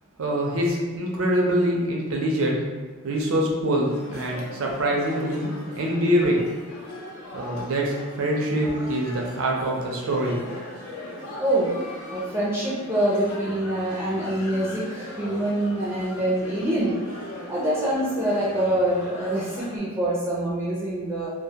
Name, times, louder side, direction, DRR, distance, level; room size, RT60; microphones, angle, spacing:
voice 1, 0.2-2.7 3.0-6.4 7.3-10.4, right 1 dB, 65° right, -1 dB, 0.5 m, -24 dB
sound 1, 3.8-19.8, left 1 dB, 70° left, 0.5 m, -39 dB
voice 2, 11.4-11.7 12.1-17.0 17.5-21.3, right 1 dB, 10° right, -8 dB, 0.4 m, -25 dB
2.2 x 2.0 x 2.7 m, 1.3 s
head